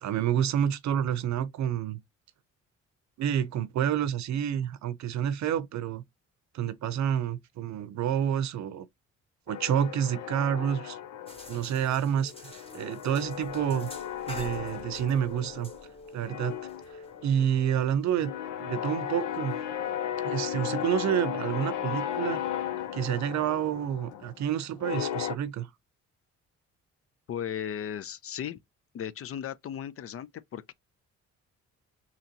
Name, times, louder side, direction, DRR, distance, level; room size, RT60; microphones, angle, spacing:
voice 1, 0.0-2.0 3.2-6.0 6.5-8.9 9.5-11.0 11.5-13.9 14.3-15.7 16.1-16.5 17.2-18.3 18.6-19.6 20.2-22.4 22.9-25.7, right 9 dB, 65° right, 0.7 m, -29 dB
sound 1, 9.5-12.0 12.3-15.9 16.2-25.3, left 10 dB, 90° left, 0.6 m, -35 dB
sound 2, 11.3-18.2, left 1 dB, 20° left, 1.4 m, -50 dB
sound 3, 11.9-17.5, left 2 dB, 70° left, 1.3 m, -51 dB
voice 2, 27.3-28.6 28.9-30.7, left 9 dB, 50° left, 0.5 m, -36 dB
4.0 x 2.9 x 2.9 m
cardioid pair, 90°, 30 cm